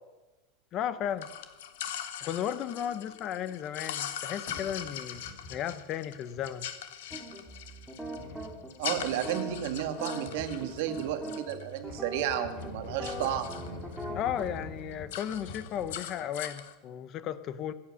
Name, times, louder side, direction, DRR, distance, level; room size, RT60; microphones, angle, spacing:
voice 1, 0.7-1.3 2.2-5.2 5.5-6.7 14.1-17.7, left 10 dB, 30° left, 14 dB, 0.7 m, -34 dB
sound 1, 1.2-12.3 12.5-14.1 14.4-14.6 14.9-16.7, left 10 dB, 80° left, 1.3 m, -41 dB
sound 2, 4.0-4.1 4.5-5.7 6.1-6.5 7.1-7.2 8.0-9.3 10.2-11.2 11.7-16.0, left 3 dB, 45° left, 5.8 m, -45 dB
sound 3, 7.1-14.4, right 1 dB, 5° right, 1.8 m, -41 dB
voice 2, 8.8-13.5, right 10 dB, 60° right, 7 dB, 1.9 m, -32 dB
26.0 x 8.7 x 6.3 m, 1.1 s
supercardioid pair, 180°, 0 cm